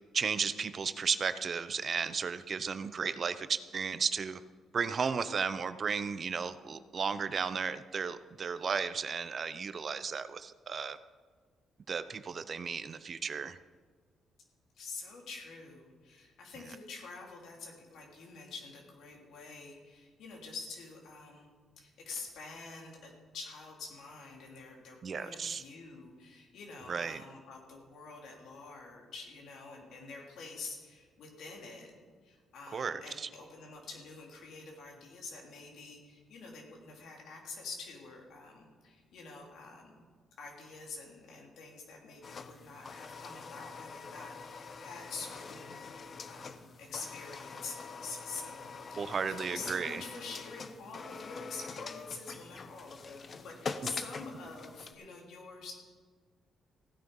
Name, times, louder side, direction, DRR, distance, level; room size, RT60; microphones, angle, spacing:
voice 1, 0.1-4.4 4.7-11.0 11.9-13.6 25.0-25.6 26.9-27.2 32.7-33.3 49.0-50.0, right 6 dB, 45° right, 12 dB, 0.6 m, -34 dB
voice 2, 14.7-31.9 32.2-40.0 40.4-55.7, left 4 dB, 75° left, 0 dB, 3.4 m, -47 dB
sound 1, 42.2-54.9, left 4 dB, 45° left, 0.8 m, -44 dB
16.0 x 9.3 x 5.5 m, 1.5 s
cardioid pair, 90°, 0 cm